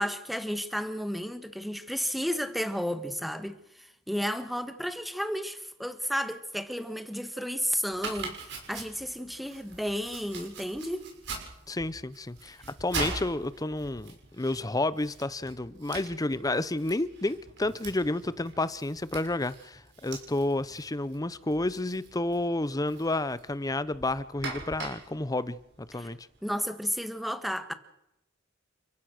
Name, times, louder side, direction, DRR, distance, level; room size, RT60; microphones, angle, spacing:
voice 1, 0.0-11.1 12.6-12.7 26.0-26.1 26.4-27.7, equal, ahead, 1.7 m, -32 dB
Domestic sounds home sounds, 7.9-26.4, right 3 dB, 60° right, 6.4 m, -43 dB
voice 2, 11.7-26.3, left 2 dB, 20° left, 0.7 m, -30 dB
29.5 x 15.5 x 6.5 m
head